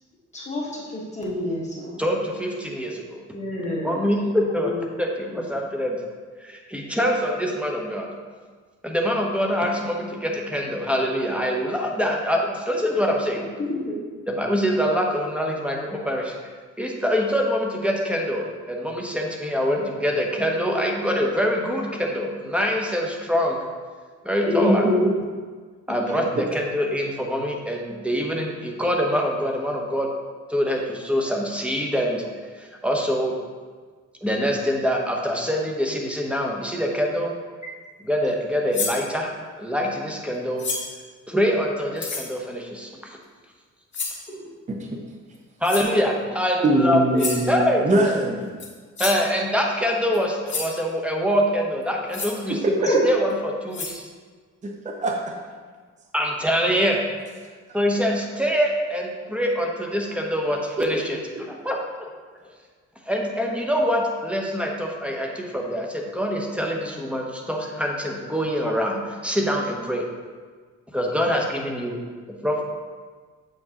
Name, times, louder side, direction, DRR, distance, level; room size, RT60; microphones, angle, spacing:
voice 1, 0.3-2.0 3.3-4.8 5.3-5.4 12.9-13.0 13.6-13.9 24.4-25.0 26.0-26.1 44.4-44.5 52.8-53.0, left 1 dB, 25° left, -4 dB, 1.4 m, -27 dB
voice 2, 2.0-3.2 3.8-4.7 5.0-6.0 6.4-8.1 8.8-13.5 14.3-16.3 16.8-23.6 24.2-24.8 25.9-30.1 30.5-32.2 32.5-33.3 34.2-37.3 38.0-39.3 39.6-40.6 41.3-43.2 45.6-47.8 49.0-52.6 53.0-54.0 56.1-57.0 57.7-61.2 61.5-61.8 63.1-70.1 70.9-72.0 72.4-72.5, equal, 5° right, 0 dB, 0.9 m, -24 dB
voice 3, 24.6-24.9 26.3-26.4 44.7-45.0 46.6-48.6 52.5-52.8 54.6-55.4 60.8-61.0, right 1 dB, 25° right, 1 dB, 0.6 m, -23 dB
sound 1, 38.7-39.0 40.6-41.0 42.0-42.3 43.9-44.3 45.6-45.9 47.2-47.5 48.6-48.7 49.0-49.3 50.1-50.2 50.5-50.7 52.1-52.4 53.3-53.4 53.7-54.0, left 4 dB, 40° left, 1.2 m, -29 dB
7.7 x 4.5 x 2.9 m, 1.5 s
cardioid pair, 90°, 30 cm